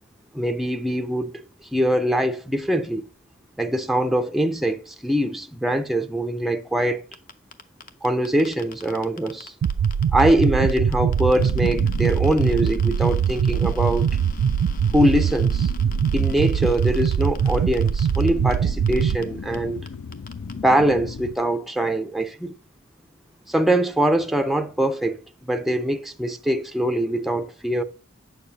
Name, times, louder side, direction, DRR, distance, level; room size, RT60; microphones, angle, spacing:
voice 1, 0.3-1.4 1.7-3.1 3.6-7.0 8.0-9.5 10.1-14.1 14.9-15.7 16.1-19.9 20.6-22.5 23.5-27.8, right 1 dB, ahead, 0.4 m, -23 dB
sound 1, 7.1-10.4 10.7-18.6 18.9-19.2 19.5-19.6 19.9-20.5, left 6 dB, 45° left, 0.7 m, -44 dB
sound 2, 9.6-19.2, right 8 dB, 85° right, 0.3 m, -22 dB
sound 3, 11.3-21.3, left 5 dB, 85° left, 0.5 m, -37 dB
8.0 x 6.7 x 2.7 m
head